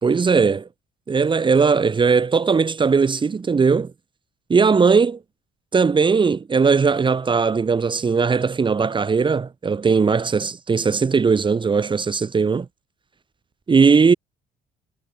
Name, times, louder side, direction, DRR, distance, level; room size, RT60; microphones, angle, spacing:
voice 1, 0.0-0.7 1.1-3.9 4.5-5.2 5.7-12.7 13.7-14.1, right 5 dB, 30° right, 3.9 m, -18 dB
cardioid pair, 110°, 17 cm